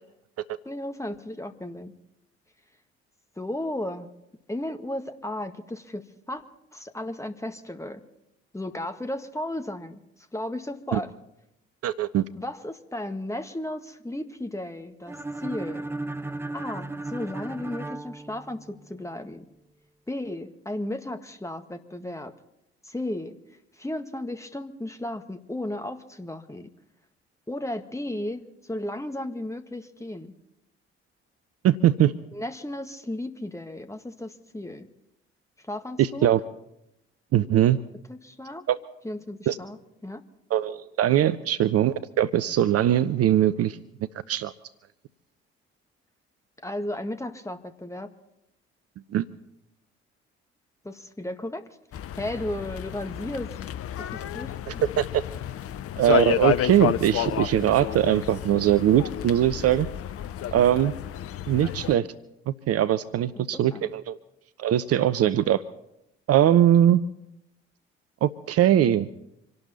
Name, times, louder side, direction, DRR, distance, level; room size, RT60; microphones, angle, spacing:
voice 1, 0.7-1.9 3.4-4.1 4.5-6.4 6.7-8.0 8.5-10.0 10.3-11.1 12.4-15.8 16.5-19.5 20.1-22.3 22.8-23.4 23.8-26.7 27.5-30.3 32.3-34.9 35.6-36.3 38.1-38.6 39.0-40.2 46.6-48.1 50.8-51.6 52.2-53.5 54.0-54.8 63.4-63.5 63.7-63.9, left 1 dB, 10° left, 7 dB, 1.9 m, -34 dB
voice 2, 11.8-12.2 31.6-32.1 36.0-36.4 37.3-37.8 38.7-38.8 39.5-39.6 40.5-43.8 44.3-44.5 49.1-49.2 54.7-55.2 56.0-59.9 60.5-60.9 61.5-62.1 62.5-64.2 64.6-65.6 66.3-67.0 68.2-69.1, right 11 dB, 50° right, 15 dB, 0.7 m, -21 dB
sound 1, 15.1-19.0, right 2 dB, 5° right, 0.7 m, -35 dB
sound 2, 51.9-62.0, left 11 dB, 45° left, 0.7 m, -31 dB
26.5 x 12.0 x 4.2 m, 0.84 s
figure-of-eight pair, 45°, 32 cm